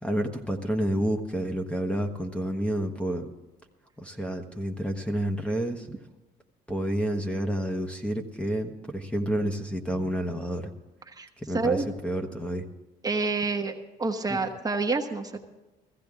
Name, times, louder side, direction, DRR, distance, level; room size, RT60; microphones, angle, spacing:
voice 1, 0.0-3.3 4.0-5.9 6.7-10.7 11.5-12.6 14.3-14.4, right 1 dB, 5° left, 4 dB, 1.2 m, -29 dB
voice 2, 13.0-13.7 14.0-15.4, right 3 dB, 20° right, 3 dB, 1.2 m, -27 dB
16.0 x 15.0 x 3.7 m, 1.1 s
cardioid pair, 110°, 17 cm